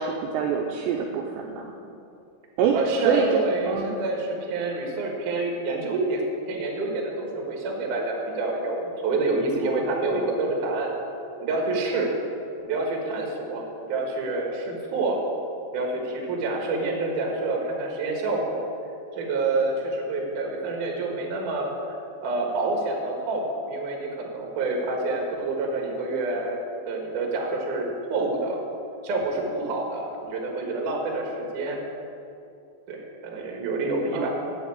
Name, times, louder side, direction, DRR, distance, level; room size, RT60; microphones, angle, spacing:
voice 1, 0.0-1.8 2.6-2.8 3.0-4.0 9.6-10.3 34.1-34.3, right 6 dB, 80° right, 1 dB, 2.6 m, -26 dB
voice 2, 2.7-10.9 11.4-12.1 12.6-15.2 15.7-18.7 19.1-21.7 22.2-26.6 26.9-28.6 29.0-31.8 32.9-34.3, right 2 dB, 60° right, 1 dB, 2.3 m, -27 dB
7.8 x 7.1 x 8.5 m, 2.6 s
omnidirectional pair, 5.4 m